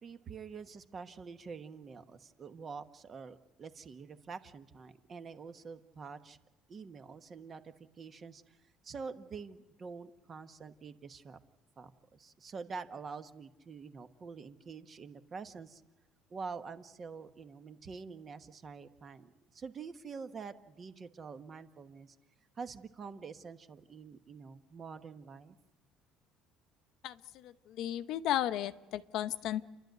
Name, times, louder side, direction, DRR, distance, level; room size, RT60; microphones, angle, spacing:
voice 1, 0.0-6.4 6.7-8.6 8.8-11.4 11.8-15.8 16.3-22.2 22.5-25.6, right 5 dB, 30° right, 10 dB, 1.2 m, -46 dB
voice 2, 27.0-29.6, left 12 dB, 60° left, 12 dB, 0.8 m, -35 dB
29.5 x 12.0 x 9.3 m, 1.2 s
cardioid pair, 155°, 0 cm